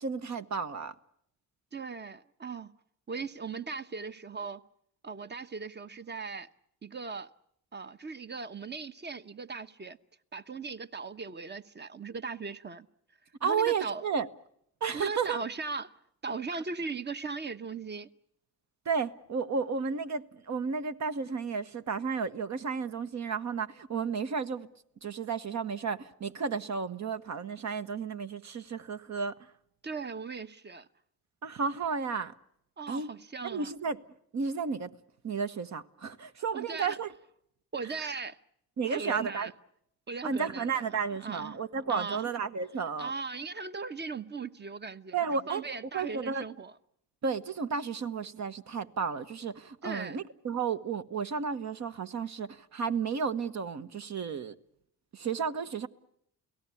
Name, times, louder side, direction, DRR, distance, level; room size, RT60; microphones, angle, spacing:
voice 1, 0.0-0.9 13.4-14.3 14.8-15.4 18.8-24.7 25.0-29.4 31.4-32.3 32.9-33.1 33.4-34.0 34.3-34.9 35.2-37.1 38.8-39.5 40.2-43.1 45.1-45.6 45.9-46.4 47.2-54.6 55.1-55.9, right 5 dB, 50° right, 1.1 m, -32 dB
voice 2, 1.7-2.7 3.1-4.6 5.0-6.5 6.8-7.3 7.7-10.0 10.3-12.9 13.4-14.0 14.9-15.9 16.2-18.1 29.8-30.9 32.8-33.7 36.5-37.0 37.7-38.4 38.9-39.5 40.1-41.6 41.9-42.3 43.0-45.2 45.5-46.7 49.8-50.2, right 4 dB, 30° right, 1.1 m, -38 dB
29.5 x 17.5 x 8.5 m
supercardioid pair, 70°, 36 cm